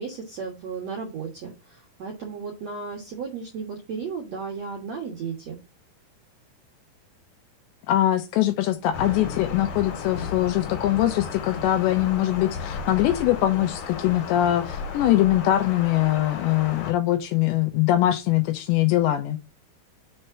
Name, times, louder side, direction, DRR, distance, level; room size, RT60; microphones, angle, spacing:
voice 1, 0.0-5.6, right 5 dB, 70° right, 1.6 m, -34 dB
voice 2, 7.9-19.4, left 13 dB, 80° left, 2.7 m, -22 dB
Thunder, 8.9-16.9, left 5 dB, 60° left, 2.2 m, -34 dB
6.8 x 4.3 x 5.9 m
omnidirectional pair, 5.6 m